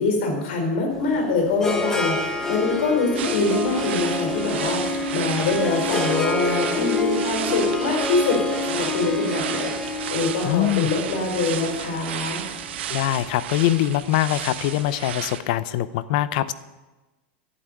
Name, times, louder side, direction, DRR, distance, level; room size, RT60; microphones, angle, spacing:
voice 1, 0.0-12.4, left 3 dB, 60° left, 1 dB, 4.7 m, -24 dB
Harp, 0.9-13.1, left 2 dB, 10° left, 1.1 m, -28 dB
sound 1, 3.1-15.4, right 10 dB, 80° right, 1.2 m, -33 dB
voice 2, 10.4-10.9 12.9-16.5, left 13 dB, 45° left, 15 dB, 0.6 m, -23 dB
11.5 x 8.3 x 9.1 m, 1.1 s
supercardioid pair, 175°, 6 cm